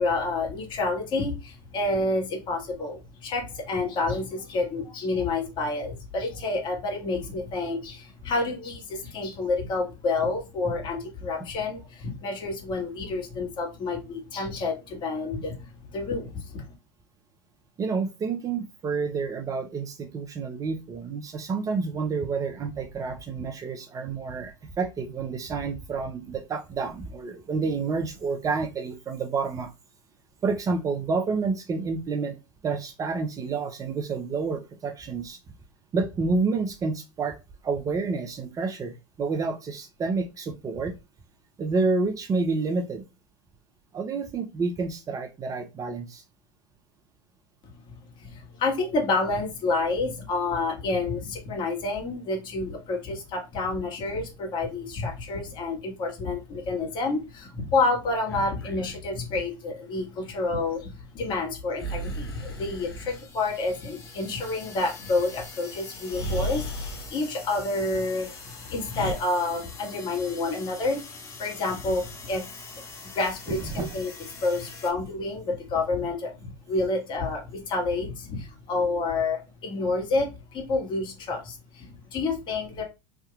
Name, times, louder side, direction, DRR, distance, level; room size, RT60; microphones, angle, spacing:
voice 1, 0.0-16.6 48.2-68.3 68.7-72.6 73.1-74.1 74.4-82.8, left 3 dB, 40° left, 1 dB, 1.5 m, -29 dB
voice 2, 17.8-29.7 30.4-32.4 32.6-35.4 35.9-37.4 37.6-40.9 41.6-43.0 43.9-46.2 73.5-73.9, right 4 dB, 30° right, 7 dB, 0.6 m, -29 dB
Breathing, 58.2-59.1 61.8-63.2 65.4-65.5 66.0-67.1 68.0-69.1, right 1 dB, 90° left, 1.0 m, -35 dB
sound 1, 62.5-74.9, left 4 dB, 25° left, 1.4 m, -44 dB
3.4 x 2.7 x 2.4 m, 0.26 s
hypercardioid pair, 90°, 12 cm